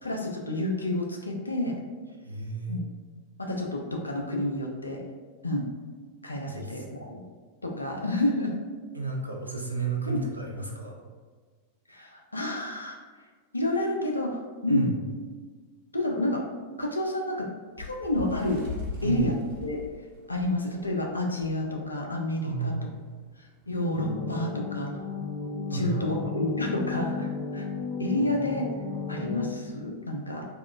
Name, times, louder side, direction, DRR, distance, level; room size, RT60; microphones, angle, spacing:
voice 1, 0.0-1.8 2.7-2.8 3.4-5.0 5.4-5.6 6.2-7.2 7.6-8.5 10.1-10.2 11.9-13.0 13.5-14.9 15.9-16.4 16.8-17.5 17.8-18.6 19.0-19.3 19.6-19.8 20.3-22.9 23.4-25.0 25.7-27.6 28.0-28.7 29.1-30.5, left 1 dB, 80° left, 1 dB, 0.4 m, -29 dB
voice 2, 2.2-2.8 6.4-7.1 8.9-10.9 14.7-14.9 19.0-19.3 22.4-22.9 25.7-26.1, right 3 dB, 85° right, -1 dB, 0.5 m, -32 dB
Bird, 17.7-20.9 21.4-21.6 21.8-22.1 22.9-23.0, left 4 dB, 70° right, 1.3 m, -39 dB
sound 1, 23.9-29.5, left 4 dB, 35° left, 1.1 m, -34 dB
3.6 x 2.3 x 2.3 m, 1.5 s
figure-of-eight pair, 90°, 0 cm